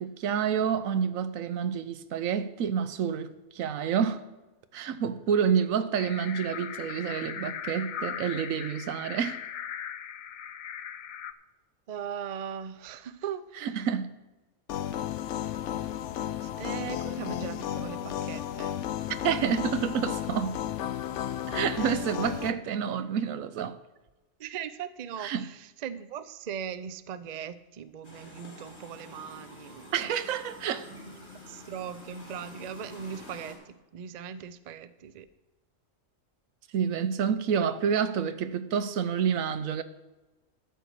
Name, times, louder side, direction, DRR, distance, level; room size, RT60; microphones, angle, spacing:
voice 1, 0.0-4.2 4.7-9.4 13.6-14.1 19.2-20.6 21.5-23.8 25.2-25.5 29.9-30.9 36.7-39.8, right 7 dB, 90° right, 1.1 m, -28 dB
sound 1, 5.9-11.3, left 9 dB, 85° left, 0.4 m, -39 dB
voice 2, 11.9-13.7 16.4-18.8 23.0-23.1 24.4-30.0 30.9-35.3, right 8 dB, 55° right, 0.4 m, -39 dB
sound 2, 14.7-22.5, left 11 dB, 70° left, 0.8 m, -33 dB
sound 3, 28.0-33.6, left 2 dB, 50° left, 3.5 m, -48 dB
12.0 x 4.6 x 8.2 m
omnidirectional pair, 1.4 m